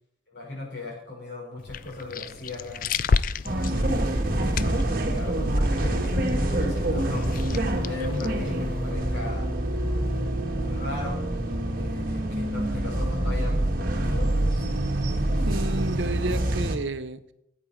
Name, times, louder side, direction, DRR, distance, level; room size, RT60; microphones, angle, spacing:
voice 1, 0.3-2.9 3.7-5.4 5.8-7.3 7.8-9.5 10.6-11.3 11.7-14.7, left 2 dB, 60° left, -2 dB, 5.1 m, -38 dB
sound 1, 1.6-8.9, left 5 dB, 45° left, 0.3 m, -32 dB
sound 2, 3.4-16.8, right 1 dB, 45° right, 1.5 m, -26 dB
voice 2, 15.2-17.3, right 2 dB, 65° right, 11 dB, 0.7 m, -32 dB
15.5 x 8.6 x 4.5 m, 0.78 s
head